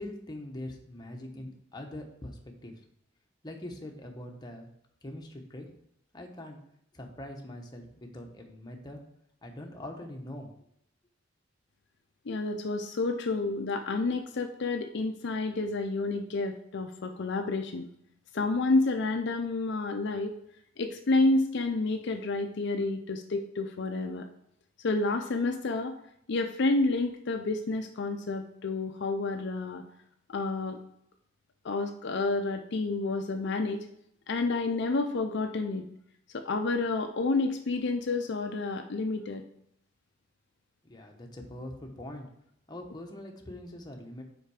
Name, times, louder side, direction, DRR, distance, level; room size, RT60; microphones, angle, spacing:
voice 1, 0.0-2.7 3.4-4.7 5.0-5.7 6.1-6.6 6.9-9.0 9.4-10.5 40.8-42.3 42.7-44.2, left 1 dB, 20° left, 1 dB, 1.0 m, -42 dB
voice 2, 12.3-17.9 18.3-20.3 20.8-24.3 24.8-26.0 26.3-29.8 30.3-30.8 31.6-33.9 34.3-35.9 36.3-39.4, left 3 dB, 60° left, 5 dB, 0.5 m, -29 dB
5.6 x 4.6 x 4.8 m, 0.73 s
head